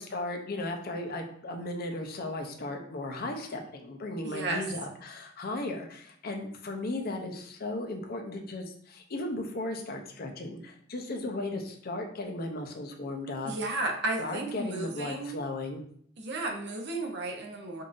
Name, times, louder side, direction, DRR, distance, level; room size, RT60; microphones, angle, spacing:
voice 1, 0.0-13.5 14.2-15.8, left 2 dB, 50° left, 3 dB, 0.6 m, -36 dB
voice 2, 4.2-4.7 13.4-15.3 16.2-17.8, right 2 dB, 60° right, 3 dB, 0.7 m, -33 dB
5.2 x 2.6 x 2.5 m, 0.64 s
head